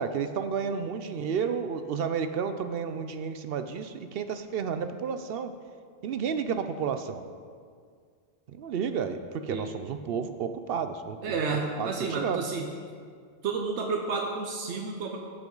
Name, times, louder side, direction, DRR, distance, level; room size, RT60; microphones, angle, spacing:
voice 1, 0.0-5.5 6.0-7.2 8.5-11.4 11.8-12.4, right 6 dB, 65° right, 9 dB, 0.7 m, -31 dB
voice 2, 11.2-12.7 13.4-15.2, right 4 dB, 85° right, 2 dB, 1.0 m, -31 dB
15.0 x 6.0 x 3.9 m, 2.1 s
omnidirectional pair, 1.1 m